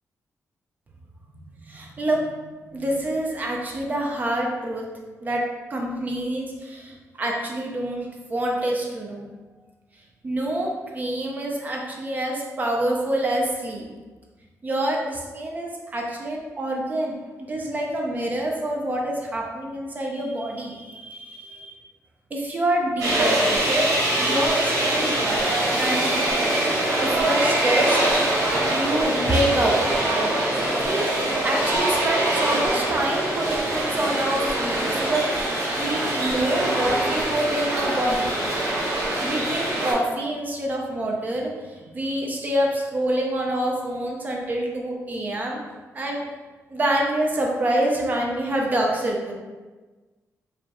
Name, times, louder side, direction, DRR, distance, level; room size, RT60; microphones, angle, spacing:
voice 1, 1.6-2.3 2.7-4.8 5.2-5.4 5.7-9.3 10.2-13.8 14.6-17.2 17.5-21.7 22.3-26.1 27.0-28.0 28.3-29.8 30.8-31.1 31.4-38.3 39.2-45.6 45.9-46.3 46.7-49.3, right 1 dB, 30° right, -1 dB, 0.5 m, -26 dB
sound 1, 23.0-39.9, right 1 dB, 80° right, 1.3 m, -23 dB
4.8 x 2.3 x 2.9 m, 1.3 s
wide cardioid pair, 155°, 6 cm